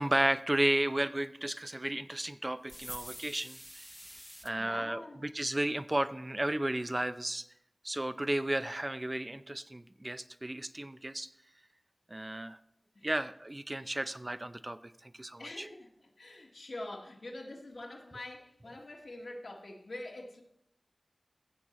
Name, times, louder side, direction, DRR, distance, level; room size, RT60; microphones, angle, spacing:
voice 1, 0.0-3.8 4.4-7.4 7.8-11.3 12.1-12.6 13.0-15.7, right 1 dB, 30° right, 11 dB, 0.5 m, -33 dB
sound 1, 2.7-4.5, equal, ahead, 0.8 m, -47 dB
voice 2, 4.6-5.2 13.0-13.1 15.4-20.4, left 1 dB, 80° left, 0 dB, 1.8 m, -45 dB
15.0 x 7.3 x 4.0 m, 0.75 s
wide cardioid pair, 50°, 0 cm